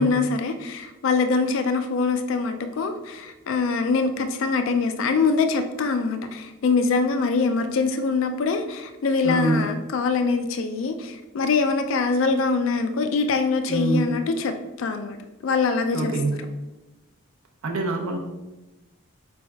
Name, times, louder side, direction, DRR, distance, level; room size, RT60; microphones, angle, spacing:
voice 1, 0.0-15.2 15.4-16.1, left 4 dB, 65° left, 8 dB, 0.3 m, -23 dB
voice 2, 9.2-9.8 13.7-14.2 15.9-16.4 17.6-18.2, right 2 dB, 80° right, 1 dB, 0.6 m, -25 dB
4.2 x 3.4 x 3.4 m, 1.0 s
head